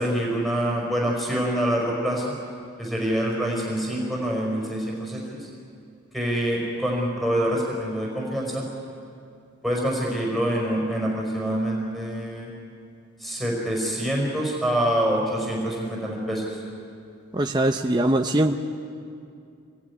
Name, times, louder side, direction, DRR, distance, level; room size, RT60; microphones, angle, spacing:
voice 1, 0.0-2.3 2.8-5.5 6.1-8.7 9.6-12.5 13.2-16.6, right 1 dB, ahead, -2 dB, 4.5 m, -26 dB
voice 2, 17.3-18.6, right 1 dB, 20° right, 3 dB, 0.7 m, -22 dB
25.5 x 19.0 x 9.7 m, 2.5 s
head